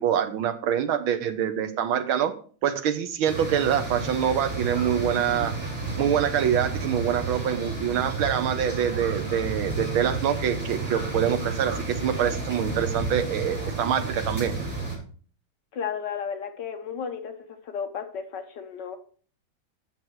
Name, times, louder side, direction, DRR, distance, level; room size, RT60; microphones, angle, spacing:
voice 1, 0.0-2.3 2.6-5.5 6.0-14.5, right 9 dB, 85° right, 9 dB, 1.8 m, -25 dB
sound 1, 3.2-15.0, right 3 dB, 30° right, 4.8 m, -31 dB
voice 2, 15.7-17.3 17.6-19.0, left 7 dB, 65° left, 7 dB, 1.6 m, -33 dB
9.1 x 7.2 x 4.7 m, 0.42 s
omnidirectional pair, 2.2 m